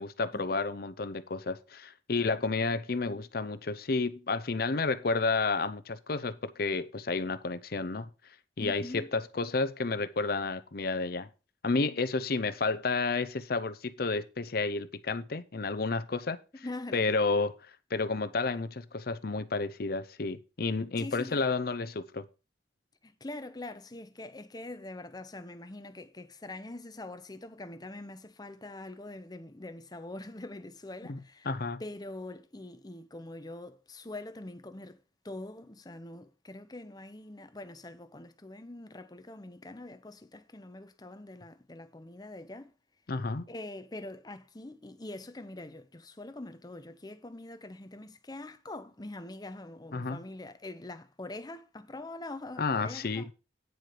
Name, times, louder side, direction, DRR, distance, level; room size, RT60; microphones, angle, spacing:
voice 1, 0.0-8.1 8.6-11.3 11.6-16.4 16.9-22.3 31.1-31.2 31.5-31.8 43.1-43.5 49.9-50.2 52.6-53.3, left 3 dB, 55° left, 0.7 m, -31 dB
voice 2, 8.6-9.1 16.6-17.1 21.0-21.4 23.0-31.5 31.8-42.7 43.5-53.3, left 2 dB, 20° left, 0.8 m, -44 dB
9.4 x 4.6 x 6.6 m
head